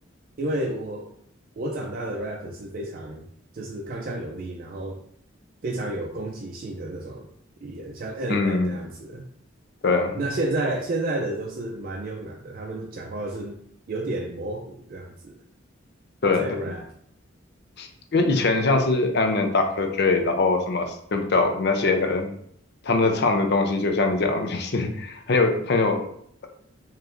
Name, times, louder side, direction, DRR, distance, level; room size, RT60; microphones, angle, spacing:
voice 1, 0.4-1.2 1.6-3.3 3.5-5.0 5.6-7.3 7.6-9.3 10.1-13.6 13.9-15.4 16.4-16.8, right 2 dB, 45° right, 1 dB, 0.4 m, -31 dB
voice 2, 8.3-8.7 9.8-10.2 16.2-16.6 17.8-22.3 22.8-26.0, left 3 dB, 55° left, 5 dB, 0.6 m, -22 dB
4.7 x 3.1 x 2.5 m, 0.67 s
head